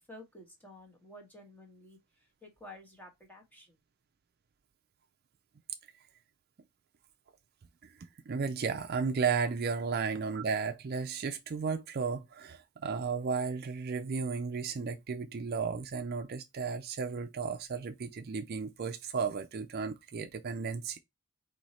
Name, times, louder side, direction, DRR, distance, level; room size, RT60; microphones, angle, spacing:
voice 1, 0.0-3.8, left 1 dB, 10° left, 1.2 m, -52 dB
voice 2, 7.8-21.0, right 5 dB, 45° right, 0.4 m, -34 dB
4.5 x 2.7 x 4.2 m
head